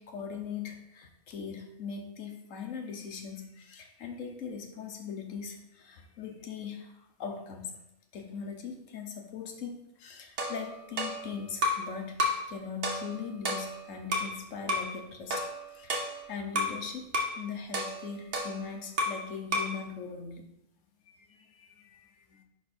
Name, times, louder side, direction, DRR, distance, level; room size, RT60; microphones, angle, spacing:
voice 1, 0.0-7.8 8.1-20.4 21.1-22.4, left 6 dB, 80° left, 4 dB, 1.3 m, -40 dB
sound 1, 10.4-11.9 12.2-12.5 12.8-14.4 14.7-14.9 15.3-16.8 17.1-17.4 17.7-19.3 19.5-19.8, left 1 dB, 65° right, 1.4 m, -32 dB
10.0 x 3.4 x 4.3 m, 0.86 s
omnidirectional pair, 1.3 m